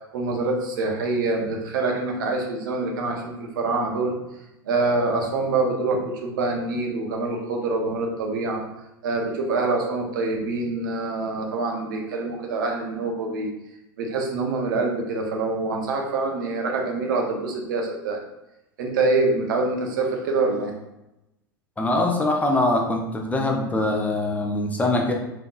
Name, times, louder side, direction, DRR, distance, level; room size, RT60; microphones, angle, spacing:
voice 1, 0.1-4.2 4.7-8.6 9.0-13.5 14.0-18.2 18.8-20.7, right 3 dB, 65° right, 1 dB, 0.7 m, -25 dB
voice 2, 21.8-25.1, left 2 dB, 15° left, 1 dB, 0.5 m, -23 dB
3.4 x 2.9 x 2.3 m, 0.92 s
figure-of-eight pair, 80°, 12 cm